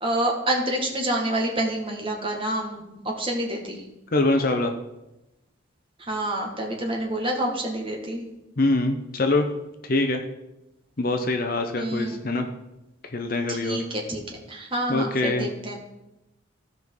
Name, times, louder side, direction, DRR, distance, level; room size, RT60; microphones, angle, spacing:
voice 1, 0.0-3.8 6.0-8.3 11.8-12.2 13.5-14.2 14.5-15.8, right 1 dB, 25° right, 1 dB, 1.7 m, -27 dB
voice 2, 4.1-4.7 8.6-9.5 9.8-10.2 11.0-12.4 13.1-13.8 14.9-15.5, left 2 dB, 45° left, 6 dB, 0.7 m, -24 dB
15.5 x 5.4 x 4.7 m, 0.95 s
head